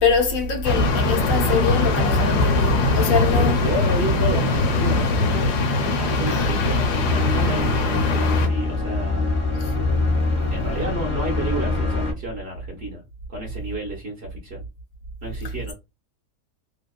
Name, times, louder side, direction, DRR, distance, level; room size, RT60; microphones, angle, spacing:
voice 1, 0.0-3.6 6.3-6.8, left 5 dB, 65° left, 1.0 m, -23 dB
sound 1, 0.6-8.5, left 2 dB, 85° left, 1.2 m, -21 dB
voice 2, 3.1-9.3 10.5-13.0 13.3-14.6 15.2-15.7, right 1 dB, 55° right, 0.8 m, -31 dB
sound 2, 6.9-12.1, left 3 dB, 40° left, 0.7 m, -24 dB
2.8 x 2.2 x 2.3 m
omnidirectional pair, 1.7 m